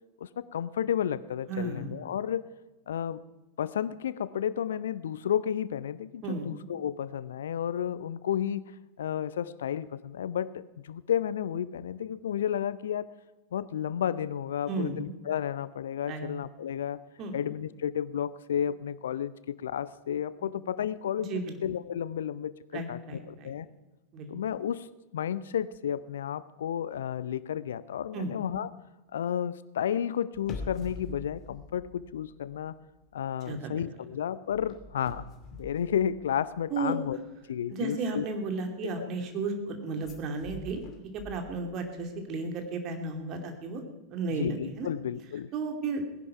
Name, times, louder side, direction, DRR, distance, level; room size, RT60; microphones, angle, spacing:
voice 1, 0.2-2.4 2.9-3.2 3.6-13.1 13.5-17.0 17.3-23.7 24.3-24.9 25.1-28.7 29.1-32.7 33.1-35.3 35.6-37.2 37.5-38.3 38.8-38.9 44.3-45.5, left 9 dB, 60° left, 17 dB, 0.5 m, -32 dB
voice 2, 1.5-2.0 6.2-6.5 14.7-15.0 16.1-16.3 17.2-17.4 21.3-21.5 22.7-23.5 24.1-24.3 28.1-28.3 33.5-33.7 36.7-37.0 37.7-40.8 41.1-43.8 44.1-44.9 45.5-46.1, right 3 dB, 35° right, 4 dB, 2.7 m, -33 dB
sound 1, 30.3-32.6 32.9-33.2 34.5-36.7 40.0-41.9 42.2-42.3, left 3 dB, 30° left, 2.5 m, -45 dB
18.5 x 11.0 x 5.8 m, 1.1 s
figure-of-eight pair, 90°, 0 cm